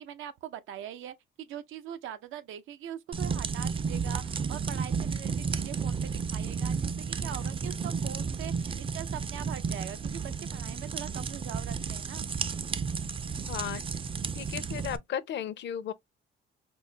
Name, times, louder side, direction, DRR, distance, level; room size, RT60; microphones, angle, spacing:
voice 1, 0.0-12.3, right 10 dB, 80° right, 0.7 m, -42 dB
sound 1, 3.1-15.0, right 5 dB, 25° right, 0.4 m, -32 dB
voice 2, 13.5-13.8 14.3-15.9, left 9 dB, 65° left, 0.6 m, -35 dB
4.2 x 2.0 x 3.3 m
cardioid pair, 90°, 20 cm